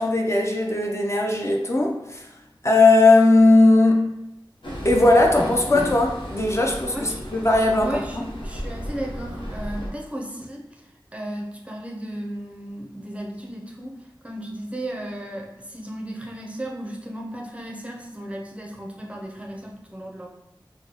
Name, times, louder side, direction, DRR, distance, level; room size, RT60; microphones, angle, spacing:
voice 1, 0.0-2.2 2.6-4.1 4.8-8.2, left 2 dB, 35° left, 0 dB, 0.5 m, -18 dB
Train, 4.6-9.9, equal, 85° left, 0.9 m, -33 dB
voice 2, 6.9-7.3 7.8-10.8 11.1-13.9 14.2-20.3, right 1 dB, 15° right, -1 dB, 0.5 m, -35 dB
3.0 x 2.0 x 3.8 m, 0.88 s
wide cardioid pair, 50°, 8 cm